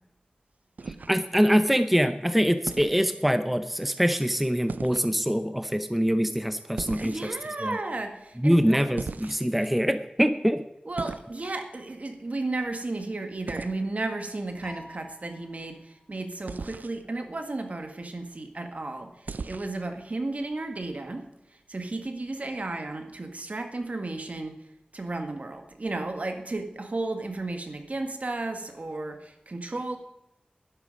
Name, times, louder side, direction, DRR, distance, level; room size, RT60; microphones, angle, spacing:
sound 1, 0.8-1.5 2.7-3.0 4.7-5.1 6.8-7.5 9.0-9.7 11.0-11.3 13.5-13.8 16.5-17.0 19.3-19.8, right 4 dB, 85° right, 0.5 m, -37 dB
voice 1, 0.9-7.8 8.4-10.6, equal, 5° right, 10 dB, 0.7 m, -24 dB
voice 2, 6.9-8.8 10.8-21.2 21.7-24.6 24.9-30.0, right 2 dB, 55° right, 5 dB, 1.7 m, -33 dB
Piano, 14.6-16.2, left 1 dB, 40° left, 3.5 m, -49 dB
12.0 x 11.0 x 5.3 m, 0.89 s
wide cardioid pair, 55°, 3 cm